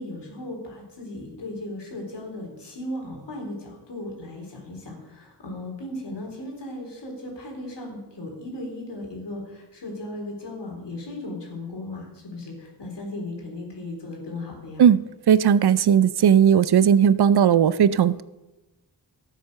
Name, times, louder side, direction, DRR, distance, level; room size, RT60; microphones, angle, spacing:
voice 1, 0.0-14.8, left 1 dB, 85° left, 0 dB, 4.0 m, -36 dB
voice 2, 15.3-18.2, right 8 dB, 70° right, 17 dB, 0.6 m, -17 dB
12.5 x 8.5 x 6.8 m, 1.1 s
cardioid pair, 55°, 41 cm